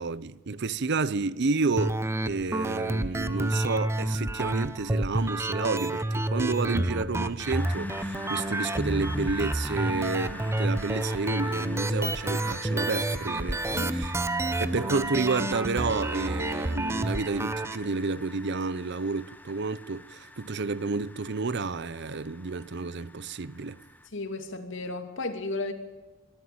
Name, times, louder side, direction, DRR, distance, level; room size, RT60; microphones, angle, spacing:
voice 1, 0.0-2.0 2.3-14.1 14.6-23.8, right 3 dB, 60° right, 0.7 m, -30 dB
sound 1, 1.8-17.8, right 1 dB, 15° right, 1.0 m, -29 dB
sound 2, 7.4-24.1, left 1 dB, 10° left, 1.3 m, -46 dB
voice 2, 24.1-25.7, left 2 dB, 70° left, 2.8 m, -33 dB
24.0 x 13.5 x 8.7 m
head